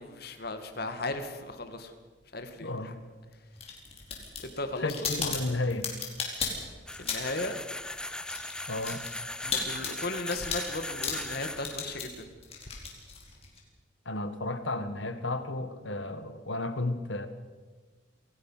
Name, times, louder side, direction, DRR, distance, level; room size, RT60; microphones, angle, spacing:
voice 1, 0.0-1.9 2.3-2.9 4.4-5.1 7.0-7.6 9.4-12.3, left 2 dB, 55° left, 7 dB, 2.1 m, -36 dB
voice 2, 2.6-3.0 4.8-5.9 8.7-9.0 14.0-17.3, left 2 dB, 75° left, 10 dB, 1.7 m, -33 dB
sound 1, 3.6-7.5 7.7-13.6, left 6 dB, 30° left, 4.5 m, -36 dB
sound 2, 6.9-12.1, left 1 dB, 5° left, 0.6 m, -39 dB
27.5 x 17.0 x 5.8 m, 1.4 s
head